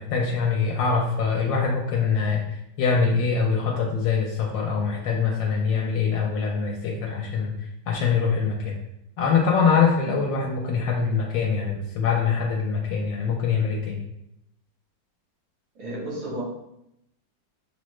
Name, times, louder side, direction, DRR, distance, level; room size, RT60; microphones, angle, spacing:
voice 1, 0.0-7.5 7.9-8.8 9.2-14.0, left 5 dB, 80° left, -1 dB, 1.2 m, -24 dB
voice 2, 15.8-16.4, right 1 dB, 90° right, -4 dB, 1.9 m, -32 dB
6.0 x 2.1 x 3.0 m, 0.82 s
omnidirectional pair, 2.1 m